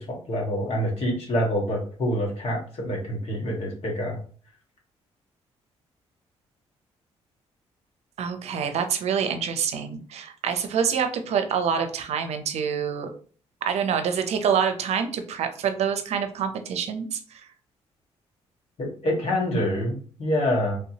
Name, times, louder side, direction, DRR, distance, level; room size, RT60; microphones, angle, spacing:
voice 1, 0.1-4.2 18.8-20.8, equal, 60° left, -1 dB, 1.5 m, -26 dB
voice 2, 8.2-13.1 13.7-17.4, right 7 dB, 70° right, 7 dB, 0.6 m, -26 dB
3.4 x 2.7 x 2.8 m, 0.43 s
cardioid pair, 75°, 11 cm